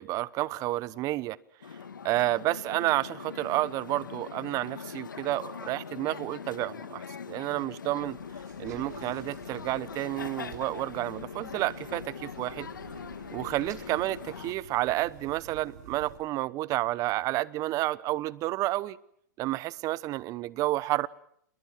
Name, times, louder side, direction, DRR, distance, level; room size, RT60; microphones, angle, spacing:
voice 1, 0.0-1.4 2.0-8.2 8.6-12.7 13.3-19.0 19.4-21.1, right 17 dB, 35° right, 1.0 m, -30 dB
sound 1, 1.6-14.5, left 6 dB, 90° left, 1.9 m, -42 dB
sound 2, 8.0-16.2, right 8 dB, 60° right, 7.6 m, -49 dB
28.5 x 22.0 x 6.2 m
hypercardioid pair, 120°, 10 cm